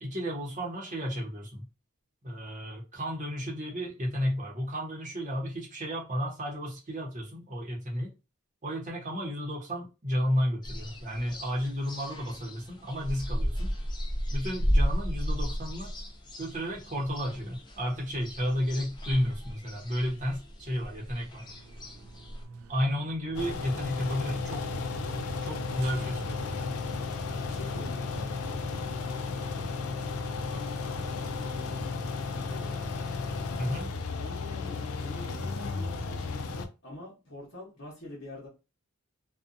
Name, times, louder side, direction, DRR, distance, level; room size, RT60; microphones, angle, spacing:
voice 1, 0.0-1.6 2.2-8.1 8.6-13.7 14.3-15.9 16.4-21.5 22.7-24.7 25.4-26.7 33.6-33.9, equal, 35° right, 0.9 m, -32 dB
sound 1, 10.6-22.5, equal, 20° left, 0.4 m, -34 dB
sound 2, 21.4-26.5, right 3 dB, 75° right, 0.4 m, -48 dB
sound 3, 23.3-36.6, left 4 dB, 85° left, 0.4 m, -34 dB
voice 2, 27.3-30.2 30.5-32.8 34.2-38.5, left 2 dB, 60° left, 1.0 m, -47 dB
2.6 x 2.2 x 2.5 m
head